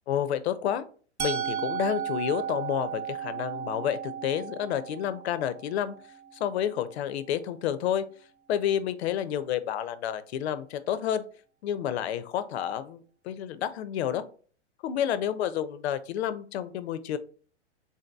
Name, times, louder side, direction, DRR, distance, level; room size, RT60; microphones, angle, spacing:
voice 1, 0.1-0.8 1.2-5.9 6.3-8.0 8.5-11.2 11.6-14.2 14.8-17.2, left 10 dB, 65° left, 13 dB, 0.5 m, -30 dB
Musical instrument, 1.2-7.1, right 8 dB, 65° right, 0.7 m, -35 dB
3.6 x 2.7 x 2.2 m, 0.42 s
hypercardioid pair, 110°, 36 cm